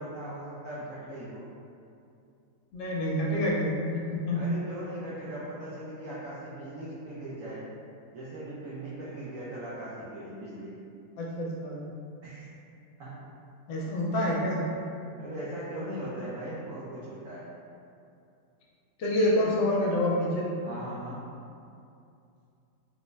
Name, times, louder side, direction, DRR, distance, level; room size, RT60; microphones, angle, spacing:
voice 1, 0.0-1.5 4.3-7.7 8.1-10.7 12.2-12.5 13.0-13.2 15.2-17.5 20.6-21.2, right 1 dB, 85° right, -8 dB, 0.7 m, -39 dB
voice 2, 2.7-4.5 11.2-11.8 13.7-14.6 19.0-20.5, left 1 dB, 75° left, -4 dB, 1.2 m, -27 dB
3.8 x 2.0 x 3.2 m, 2.6 s
omnidirectional pair, 2.1 m